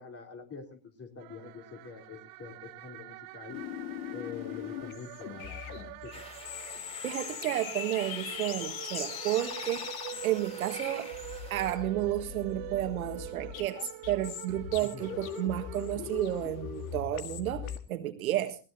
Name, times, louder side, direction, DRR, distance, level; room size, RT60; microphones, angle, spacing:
voice 1, 0.0-3.6 4.1-6.2 14.8-15.1, left 5 dB, 35° left, 3 dB, 3.9 m, -46 dB
sound 1, 1.2-16.5, right 20 dB, 55° right, 1.0 m, -46 dB
sound 2, 3.5-17.8, left 9 dB, 80° left, 1.8 m, -41 dB
sound 3, 6.1-11.7, left 1 dB, 15° left, 3.8 m, -45 dB
voice 2, 6.7-11.1 11.5-18.6, right 13 dB, 90° right, 7 dB, 1.7 m, -32 dB
20.5 x 18.0 x 2.7 m, 0.32 s
hypercardioid pair, 95°, 41 cm